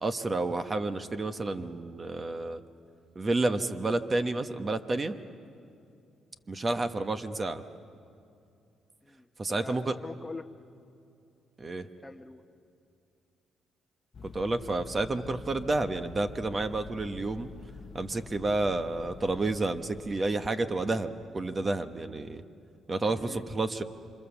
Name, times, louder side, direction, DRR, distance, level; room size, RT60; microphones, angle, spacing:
voice 1, 0.0-2.6 3.1-5.2 6.5-7.6 9.4-9.9 11.6-11.9 14.2-17.5 17.9-22.4 22.9-23.8, right 2 dB, 30° right, 9 dB, 1.1 m, -30 dB
voice 2, 9.0-10.5 12.0-12.4 23.2-23.5, left 3 dB, 15° left, 7 dB, 1.0 m, -43 dB
sound 1, 14.1-20.8, left 5 dB, 45° left, 0.8 m, -47 dB
28.0 x 25.5 x 7.2 m, 2.5 s
cardioid pair, 90°, 0 cm